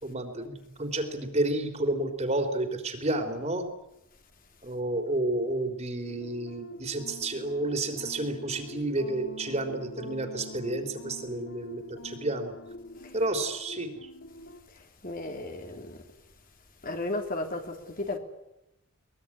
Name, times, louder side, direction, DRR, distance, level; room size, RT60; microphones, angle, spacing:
voice 1, 0.0-3.7 4.6-12.5 13.1-14.1, right 2 dB, 30° right, 3.8 m, -31 dB
sound 1, 6.1-14.6, left 1 dB, 65° left, 2.1 m, -45 dB
voice 2, 15.0-16.0 16.8-18.2, left 2 dB, 40° left, 3.1 m, -34 dB
22.5 x 22.5 x 9.9 m
head